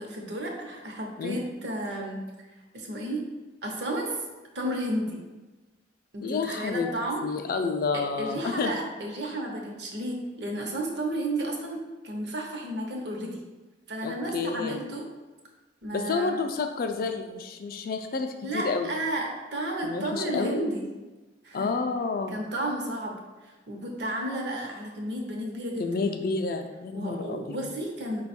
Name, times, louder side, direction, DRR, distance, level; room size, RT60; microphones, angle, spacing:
voice 1, 0.0-2.2 2.7-3.2 3.6-4.2 4.5-5.2 6.1-7.3 7.9-13.4 13.9-15.1 15.8-16.4 18.4-20.8 21.4-21.7 22.3-23.1 23.4-26.1 26.9-28.2, right 1 dB, 60° right, 0 dB, 0.8 m, -32 dB
voice 2, 6.2-6.9 7.2-8.7 14.0-14.8 15.9-18.9 19.8-20.7 21.5-22.4 25.8-27.7, left 4 dB, 50° left, 6 dB, 0.3 m, -30 dB
5.0 x 2.3 x 4.2 m, 1.2 s
head